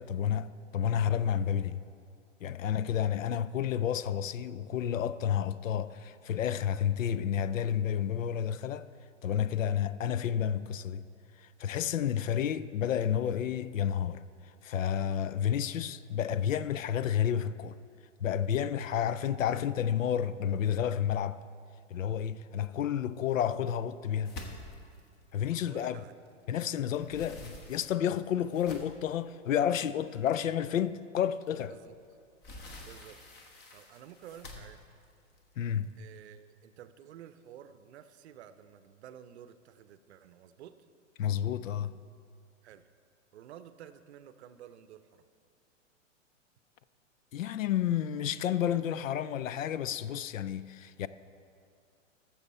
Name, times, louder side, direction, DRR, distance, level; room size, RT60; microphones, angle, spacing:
voice 1, 0.0-1.8 2.4-8.9 9.2-11.1 11.4-17.8 18.2-21.4 21.9-24.3 25.3-26.0 26.5-31.7 35.6-35.9 41.2-42.0 47.3-51.1, left 9 dB, 80° left, 0.5 m, -31 dB
sound 1, 24.2-26.4 26.8-29.2 29.8-29.9 30.4-30.5 31.9-36.2, left 2 dB, 25° left, 1.1 m, -48 dB
voice 2, 25.5-26.1 31.7-31.9 32.8-33.2 33.7-34.8 36.0-40.7 42.6-42.8 43.3-45.3, right 10 dB, 55° right, 0.6 m, -51 dB
13.0 x 7.0 x 4.2 m
hypercardioid pair, 120°, 39 cm